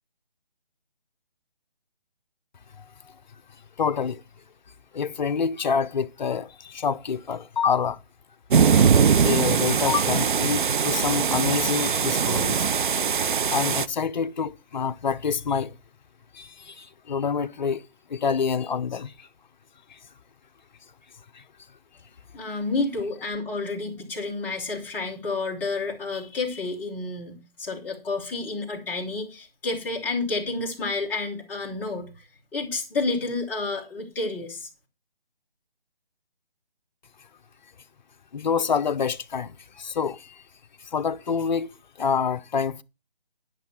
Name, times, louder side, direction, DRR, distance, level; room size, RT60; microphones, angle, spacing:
voice 1, 2.8-3.1 3.8-4.2 4.9-8.0 9.2-12.7 13.4-15.7 16.3-19.3 19.9-20.0 21.3-21.4 38.3-40.4 40.8-42.8, left 6 dB, 50° left, 0.7 m, -27 dB
sound 1, 8.5-13.9, right 6 dB, 55° right, 0.5 m, -21 dB
voice 2, 22.3-32.1 32.5-34.7, left 3 dB, 5° left, 1.2 m, -30 dB
10.5 x 6.6 x 5.9 m
figure-of-eight pair, 155°, 29 cm